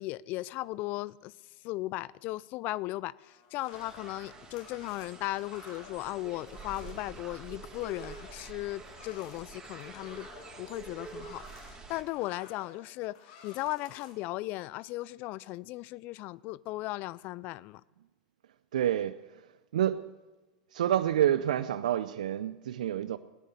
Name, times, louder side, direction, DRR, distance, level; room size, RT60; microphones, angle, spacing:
voice 1, 0.0-1.3 1.6-10.3 10.6-13.2 13.4-17.8, left 18 dB, 50° left, 0.4 m, -37 dB
sound 1, 3.2-14.1, left 6 dB, 70° left, 3.1 m, -55 dB
sound 2, 3.7-12.0, right 4 dB, 20° right, 3.7 m, -47 dB
voice 2, 18.7-19.2 19.7-20.1 20.7-23.2, right 11 dB, 80° right, 0.5 m, -28 dB
16.5 x 10.0 x 8.2 m
hypercardioid pair, 105°, 4 cm